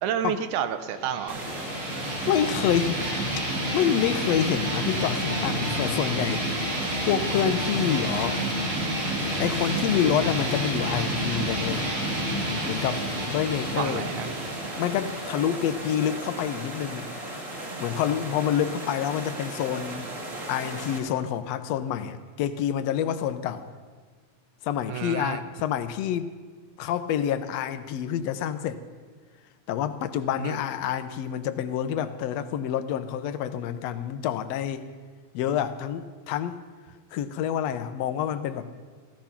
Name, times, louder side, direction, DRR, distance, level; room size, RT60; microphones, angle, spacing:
voice 1, 0.0-1.4 13.8-14.4 24.9-25.4 30.4-30.6, right 9 dB, 85° right, 10 dB, 2.3 m, -30 dB
sound 1, 0.9-16.3, right 1 dB, 65° right, 5.4 m, -30 dB
sound 2, 1.3-21.0, right 1 dB, 30° right, 2.2 m, -37 dB
voice 2, 2.3-3.0 3.7-6.5 7.1-8.4 9.4-11.9 12.7-14.1 14.8-17.1 17.8-23.7 24.6-26.3 26.8-28.8 29.7-34.9 35.3-36.6 37.1-38.7, left 9 dB, 70° left, 11 dB, 1.8 m, -27 dB
15.0 x 15.0 x 5.9 m, 1.5 s
omnidirectional pair, 3.4 m